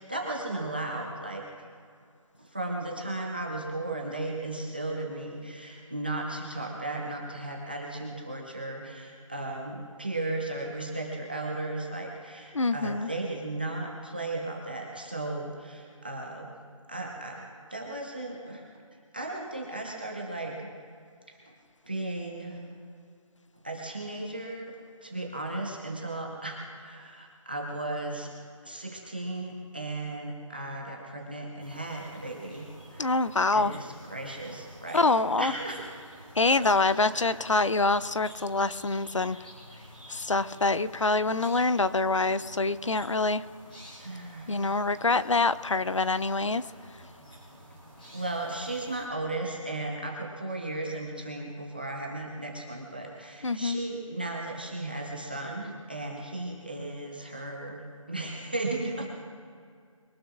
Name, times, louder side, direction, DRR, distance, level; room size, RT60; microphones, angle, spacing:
voice 1, 0.0-1.4 2.4-16.6 16.9-18.6 19.1-20.7 21.5-21.6 21.8-22.6 23.6-24.7 25.0-28.3 28.6-33.1 33.5-35.1 35.4-35.9 36.6-37.5 44.0-44.9 46.6-46.7 48.0-59.1, right 2 dB, 15° right, -1 dB, 0.9 m, -35 dB
voice 2, 12.5-13.1 33.0-33.7 34.9-35.5 36.4-39.4 40.1-43.4 44.5-46.6 53.4-53.8, left 3 dB, 60° left, 14 dB, 0.6 m, -25 dB
sound 1, 31.6-49.1, equal, 15° left, 3.9 m, -50 dB
23.5 x 18.5 x 2.5 m, 2.2 s
figure-of-eight pair, 180°, 18 cm